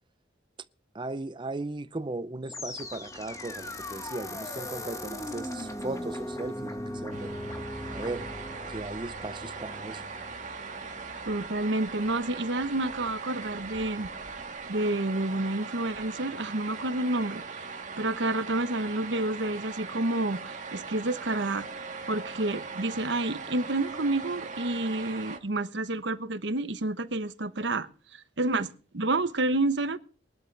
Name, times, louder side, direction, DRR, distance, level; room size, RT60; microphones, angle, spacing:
voice 1, 0.9-7.4 7.9-8.3 8.7-10.0, right 2 dB, 25° right, 0.6 m, -37 dB
sound 1, 2.5-11.6, left 1 dB, 15° left, 1.4 m, -39 dB
sound 2, 7.1-25.4, right 4 dB, 40° right, 1.8 m, -40 dB
voice 2, 11.3-14.1 14.7-17.4 18.0-21.7 22.1-27.9 28.4-30.0, right 2 dB, 70° right, 1.1 m, -29 dB
20.0 x 12.0 x 3.4 m
head